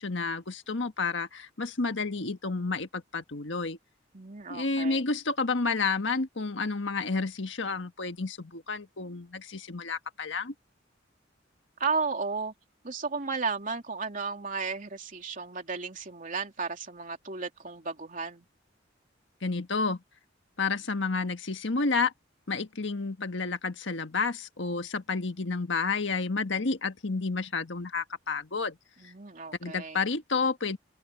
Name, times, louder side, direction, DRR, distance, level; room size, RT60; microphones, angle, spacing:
voice 1, 0.0-3.8 4.5-10.5 19.4-20.0 20.6-22.1 22.5-28.8 29.6-30.8, left 4 dB, 70° left, 1.5 m, -30 dB
voice 2, 4.1-5.0 11.8-12.5 12.8-18.5 29.0-30.0, right 4 dB, 45° right, 3.2 m, -34 dB
open air
head